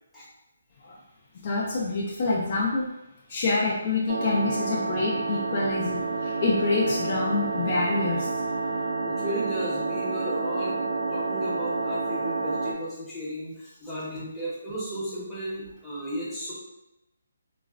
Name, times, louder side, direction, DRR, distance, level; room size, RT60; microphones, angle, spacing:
voice 1, 1.4-2.9 3.3-8.3, left 3 dB, 30° left, -3 dB, 0.4 m, -26 dB
sound 1, 4.1-12.7, right 3 dB, 35° right, 0.4 m, -29 dB
voice 2, 9.0-10.8 11.1-16.5, equal, ahead, -12 dB, 0.7 m, -34 dB
3.8 x 2.1 x 2.5 m, 0.91 s
hypercardioid pair, 175°, 0 cm